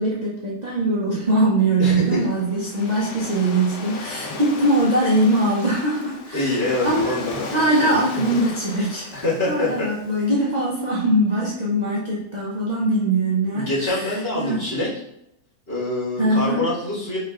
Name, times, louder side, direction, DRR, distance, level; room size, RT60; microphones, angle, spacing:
voice 1, 0.0-7.2 7.5-9.1 9.4-14.6 16.2-16.6, right 1 dB, 60° right, -5 dB, 0.4 m, -22 dB
voice 2, 1.8-2.2 6.3-8.0 9.1-9.9 13.5-14.9 15.7-17.2, left 1 dB, 35° left, -10 dB, 1.9 m, -25 dB
Waves surf, 2.0-10.2, left 3 dB, 65° left, 0.7 m, -36 dB
4.7 x 3.3 x 2.3 m, 0.80 s
omnidirectional pair, 1.7 m